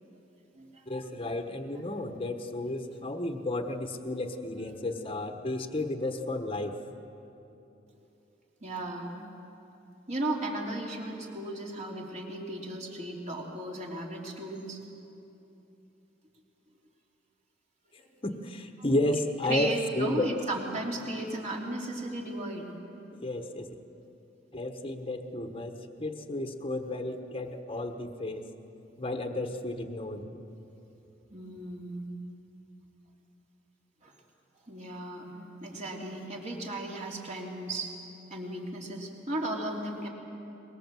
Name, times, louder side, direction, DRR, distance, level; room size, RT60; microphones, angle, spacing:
voice 1, 0.9-6.8 17.9-20.3 23.1-23.7 24.5-28.5 29.0-30.5, left 1 dB, 30° left, 6 dB, 1.2 m, -32 dB
voice 2, 8.6-9.1 10.1-14.8 19.1-19.2 19.5-22.7 31.3-32.0 34.0-34.1 34.7-35.3 35.6-37.9 38.3-40.1, right 1 dB, 40° right, -1 dB, 3.2 m, -35 dB
23.0 x 21.5 x 7.6 m, 3.0 s
head